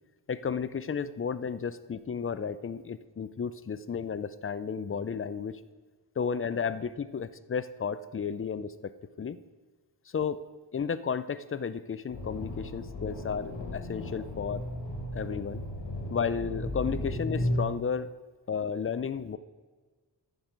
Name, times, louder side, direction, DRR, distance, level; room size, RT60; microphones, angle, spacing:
voice 1, 0.3-5.6 6.2-8.9 9.2-9.4 10.1-10.4 10.7-14.6 15.1-15.6 16.1-18.1 18.5-19.4, left 6 dB, 30° left, 14 dB, 0.4 m, -33 dB
sound 1, 12.1-17.6, left 1 dB, 80° left, 2.0 m, -35 dB
14.5 x 6.1 x 5.0 m, 1.4 s
wide cardioid pair, 120°, 43 cm